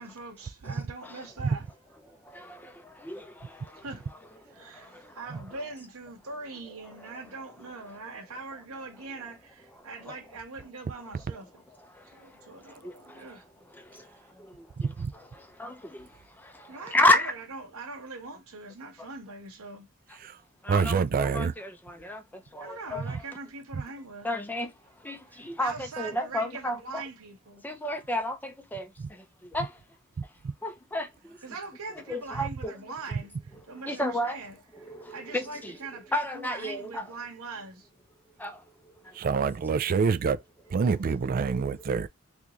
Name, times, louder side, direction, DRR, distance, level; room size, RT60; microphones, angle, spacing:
voice 1, 0.0-1.7 3.7-4.0 4.5-11.6 12.0-13.5 16.7-19.9 22.6-24.3 25.3-27.7 31.4-37.9, right 3 dB, 75° right, 1.1 m, -42 dB
voice 2, 0.6-1.3 2.8-3.8 4.4-5.2 6.9-7.3 9.8-10.2 11.9-13.4 13.7-17.3 19.0-19.1 20.6-23.2 24.2-27.0 27.6-29.8 30.6-31.4 31.9-32.7 33.6-34.4 34.7-35.8 36.1-37.1 38.4-39.7 41.4-42.1, left 1 dB, 10° left, 0.6 m, -33 dB
voice 3, 14.8-15.1 20.2-20.4 20.7-21.5 30.4-30.5 39.2-40.4 40.7-42.1, right 5 dB, 40° right, 0.3 m, -26 dB
3.5 x 2.6 x 3.0 m
head